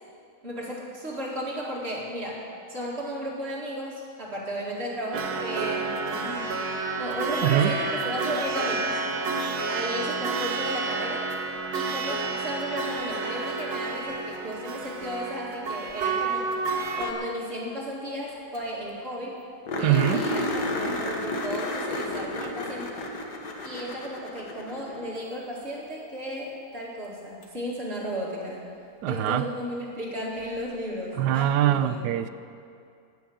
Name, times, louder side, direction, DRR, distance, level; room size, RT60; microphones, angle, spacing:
voice 1, 0.4-2.4 2.7-6.5 7.0-9.0 9.7-11.3 11.7-16.5 17.0-19.3 19.8-23.0 23.6-28.7 29.1-32.0, equal, 40° right, -6 dB, 2.3 m, -34 dB
sound 1, 5.1-17.1, right 4 dB, 70° right, 1.5 m, -30 dB
sound 2, 18.3-18.4 18.5-18.6 19.0-19.1 19.7-25.1 27.4-27.5 30.4-30.5, left 1 dB, 85° left, 2.0 m, -31 dB
voice 2, 19.8-20.2 29.0-29.4 31.2-32.3, right 12 dB, 90° right, 13 dB, 1.2 m, -23 dB
15.5 x 6.4 x 9.0 m, 2.4 s
omnidirectional pair, 1.7 m